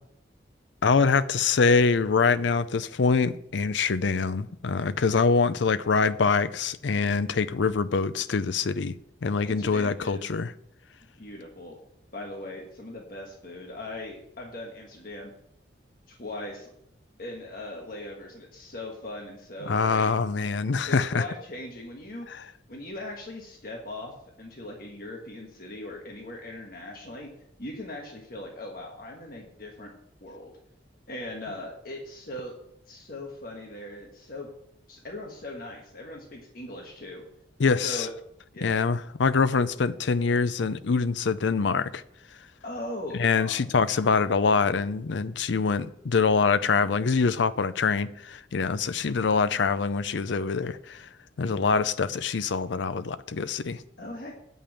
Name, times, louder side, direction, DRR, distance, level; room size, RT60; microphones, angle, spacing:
voice 1, 0.8-9.0 9.2-10.5 19.7-21.2 37.6-38.1 38.6-42.0 43.2-51.1 51.4-53.8, left 4 dB, 75° left, 0.5 m, -24 dB
voice 2, 9.4-10.3 11.2-11.8 12.1-15.3 16.1-16.7 17.2-20.1 20.8-22.3 22.7-27.3 27.6-29.9 30.2-30.5 31.1-32.5 32.9-34.5 34.9-37.2 37.8-38.1 38.5-38.8 42.6-43.5 54.0-54.3, left 1 dB, 50° left, 1.4 m, -39 dB
8.6 x 5.4 x 7.6 m
head